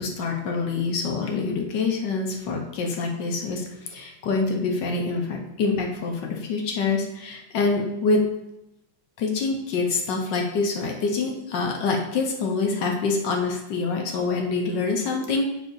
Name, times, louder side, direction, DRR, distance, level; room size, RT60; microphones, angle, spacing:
voice 1, 0.0-8.2 9.2-15.4, left 4 dB, 75° left, 1 dB, 1.7 m, -26 dB
12.5 x 4.4 x 2.7 m, 0.91 s
omnidirectional pair, 2.0 m